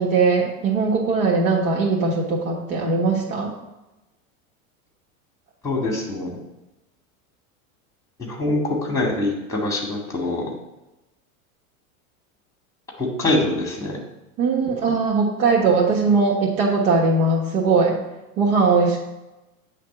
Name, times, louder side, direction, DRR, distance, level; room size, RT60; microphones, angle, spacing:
voice 1, 0.0-3.5 14.4-18.0 18.4-19.0, right 4 dB, 75° right, -3 dB, 1.5 m, -20 dB
voice 2, 5.6-6.4 8.2-10.5 13.0-14.0, left 2 dB, 5° left, 1 dB, 2.0 m, -24 dB
8.6 x 3.4 x 6.1 m, 1.0 s
supercardioid pair, 115°, 43 cm